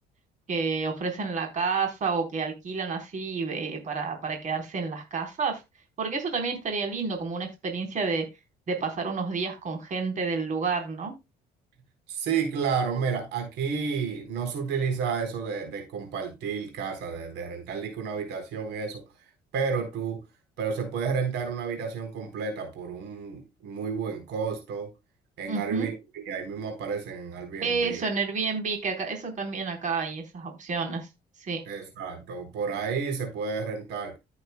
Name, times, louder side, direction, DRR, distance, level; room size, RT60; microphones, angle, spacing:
voice 1, 0.5-5.6 6.0-8.3 8.7-11.2 25.5-25.9 27.6-31.1 31.4-31.6, right 4 dB, 45° right, 4.1 m, -30 dB
voice 2, 12.1-19.0 19.5-20.2 20.6-24.9 25.4-28.0 31.7-34.1, right 6 dB, 85° right, 4.2 m, -31 dB
15.0 x 8.1 x 2.2 m
cardioid pair, 110°, 17 cm